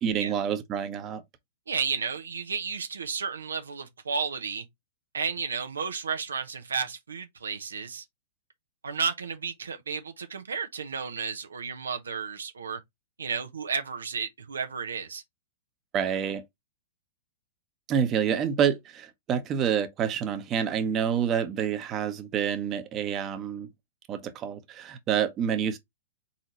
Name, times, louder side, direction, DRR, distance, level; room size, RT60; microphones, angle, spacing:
voice 1, 0.0-1.2 15.9-16.4 17.9-23.7 24.1-25.8, right 8 dB, 30° right, 0.9 m, -28 dB
voice 2, 1.7-4.6 5.1-8.0 8.8-12.8 13.2-15.2, right 5 dB, 85° right, 0.8 m, -32 dB
4.2 x 4.0 x 3.0 m
hypercardioid pair, 115°, 0 cm